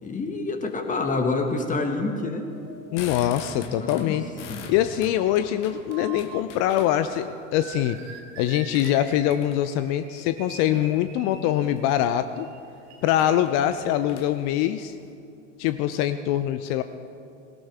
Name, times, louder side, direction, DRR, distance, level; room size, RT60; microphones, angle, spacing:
voice 1, 0.0-2.5 3.7-4.2 4.5-4.6, left 3 dB, 20° left, 4 dB, 1.7 m, -27 dB
sound 1, 2.4-11.7 12.3-13.3, right 6 dB, 45° right, 1.8 m, -45 dB
sound 2, 2.7-7.3 7.8-9.8 10.6-11.0 11.5-11.9 12.3-12.4 12.6-12.7 13.1-15.1, left 6 dB, 70° left, 1.5 m, -43 dB
voice 2, 2.9-4.3 4.7-8.0 8.4-12.5 13.0-14.9 15.6-16.8, left 11 dB, 45° left, 11 dB, 0.6 m, -23 dB
18.0 x 17.0 x 3.5 m, 2.5 s
figure-of-eight pair, 85°, 38 cm